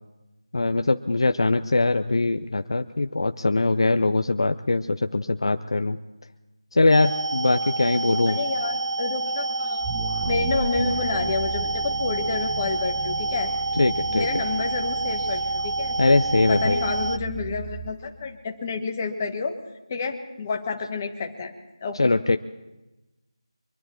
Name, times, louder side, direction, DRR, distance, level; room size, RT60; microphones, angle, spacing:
voice 1, 0.5-6.0 6.7-8.4 13.8-14.4 16.0-16.8 22.0-22.4, left 2 dB, 60° left, 8 dB, 0.6 m, -22 dB
sound 1, 6.9-17.2, right 2 dB, 75° right, 0.4 m, -28 dB
voice 2, 8.3-9.9 10.2-13.5 14.1-16.0 16.5-19.5 19.9-21.5 21.8-22.1, left 4 dB, 20° left, 4 dB, 1.2 m, -29 dB
sound 2, 9.8-17.9, right 6 dB, 15° right, 0.7 m, -36 dB
24.0 x 10.5 x 4.4 m, 1.1 s
figure-of-eight pair, 165°, 3 cm